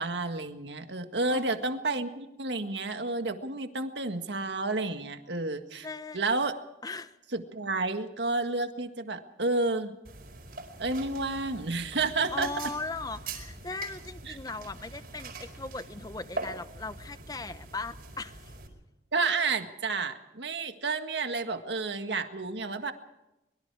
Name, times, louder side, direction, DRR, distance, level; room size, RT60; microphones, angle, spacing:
voice 1, 0.0-5.9 6.1-6.5 7.3-9.9 10.8-12.5 14.3-14.4 19.1-22.9, right 3 dB, 80° right, 7 dB, 1.7 m, -30 dB
voice 2, 1.3-1.8 5.8-6.2 6.8-7.2 12.3-18.5, left 3 dB, 20° left, 12 dB, 1.0 m, -39 dB
sound 1, 10.0-18.7, right 3 dB, 55° right, 4.9 m, -43 dB
24.5 x 23.0 x 4.8 m, 0.95 s
head